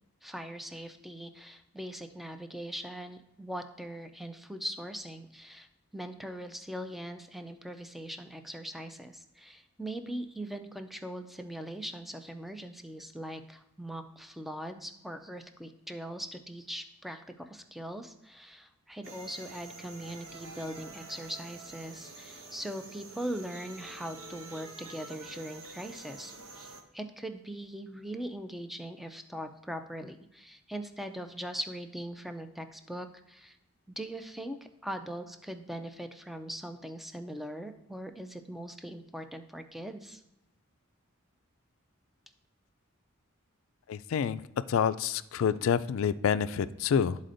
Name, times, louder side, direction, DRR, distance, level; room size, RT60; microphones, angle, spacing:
voice 1, 0.2-5.7 5.9-33.6 34.0-40.2, right 1 dB, ahead, 7 dB, 0.4 m, -41 dB
sound 1, 19.0-26.8, right 3 dB, 75° right, 0.9 m, -47 dB
voice 2, 43.9-44.4 44.7-47.3, left 7 dB, 65° left, 14 dB, 0.3 m, -28 dB
12.5 x 4.2 x 2.6 m, 0.83 s
head